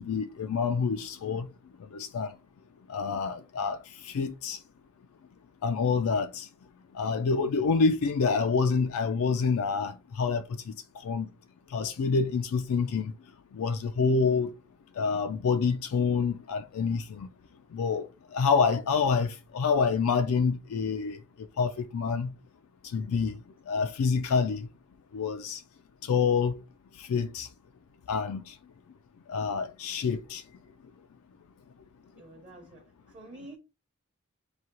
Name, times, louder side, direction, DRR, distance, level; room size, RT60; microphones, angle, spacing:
voice 1, 0.0-1.5 1.9-2.3 2.9-3.8 4.0-4.6 5.6-6.5 6.9-10.4 11.0-11.3 11.7-13.1 13.5-14.5 15.0-17.3 17.7-18.1 18.3-21.2 21.6-22.3 22.9-23.4 23.7-24.7 25.1-25.6 26.1-26.6 27.0-27.5 28.1-28.5 29.3-30.4, left 5 dB, 70° left, 0.4 m, -27 dB
voice 2, 32.2-33.6, right 2 dB, 30° right, 0.8 m, -48 dB
4.8 x 2.7 x 2.9 m
head